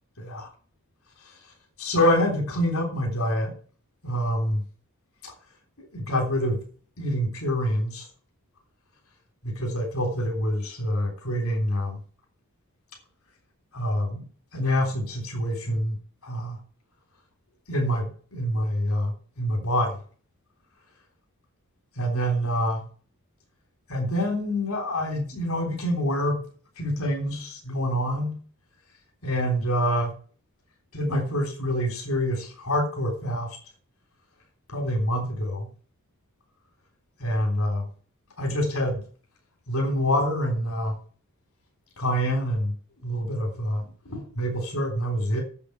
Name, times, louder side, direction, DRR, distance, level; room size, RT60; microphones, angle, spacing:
voice 1, 0.2-0.5 1.2-1.3 1.8-3.5 4.0-4.6 5.2-5.3 5.8-6.6 7.0-8.0 9.4-12.0 13.7-14.2 14.5-16.0 16.2-16.6 17.7-20.0 22.0-22.8 23.9-26.4 26.8-28.4 29.2-30.1 30.9-33.6 34.7-35.7 37.2-37.9 38.4-39.0 39.7-40.9 42.0-42.7 43.0-45.4, equal, 70° left, 3.5 m, -26 dB
8.3 x 7.7 x 8.1 m
head